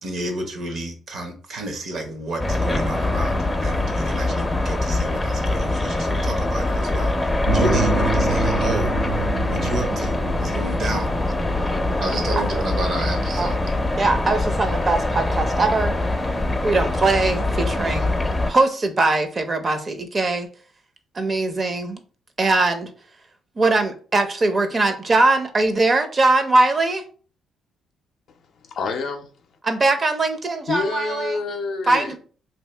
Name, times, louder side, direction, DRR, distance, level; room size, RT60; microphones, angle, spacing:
voice 1, 0.0-11.1 12.0-13.6, right 1 dB, 65° right, 0.9 m, -31 dB
sound 1, 2.4-18.5, left 2 dB, 15° left, 0.5 m, -23 dB
sound 2, 7.5-12.3, right 4 dB, 90° right, 0.7 m, -27 dB
voice 2, 14.0-16.0 16.6-18.1 18.4-20.5 21.1-22.0 22.4-22.9 23.6-27.0 29.6-31.4 31.9-32.2, right 2 dB, 35° right, 0.6 m, -21 dB
voice 3, 28.7-29.3 30.7-32.1, left 4 dB, 65° left, 0.5 m, -27 dB
2.8 x 2.6 x 3.3 m
cardioid pair, 90°, 0 cm